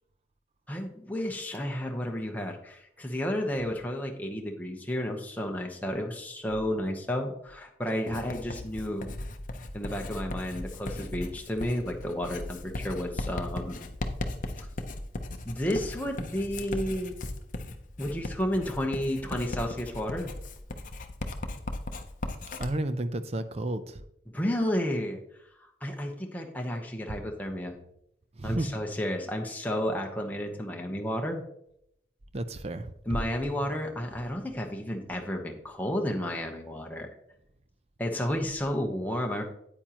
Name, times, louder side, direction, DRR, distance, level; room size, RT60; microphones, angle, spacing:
voice 1, 0.7-9.1 9.7-13.9 14.6-14.7 15.4-17.1 18.0-20.3 24.3-25.2 25.8-27.8 28.4-31.4 33.0-37.1 38.0-39.4, equal, 10° left, 1 dB, 0.9 m, -32 dB
Writing, 8.1-22.7, left 2 dB, 45° left, 0.7 m, -37 dB
voice 2, 22.6-24.0 28.4-28.7 32.3-32.9, right 1 dB, 35° right, 11 dB, 0.5 m, -32 dB
8.9 x 8.8 x 3.0 m, 0.74 s
head